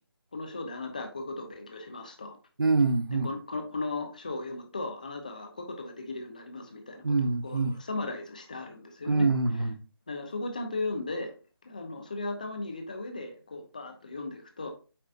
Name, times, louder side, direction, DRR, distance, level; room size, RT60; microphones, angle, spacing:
voice 1, 0.3-2.4 3.2-9.3 10.1-11.3 11.6-14.7, left 2 dB, 20° left, 0.8 m, -36 dB
voice 2, 2.6-3.3 7.0-7.8 9.1-9.8, right 3 dB, 60° right, 0.9 m, -25 dB
8.6 x 5.3 x 2.6 m
figure-of-eight pair, 175°, 13 cm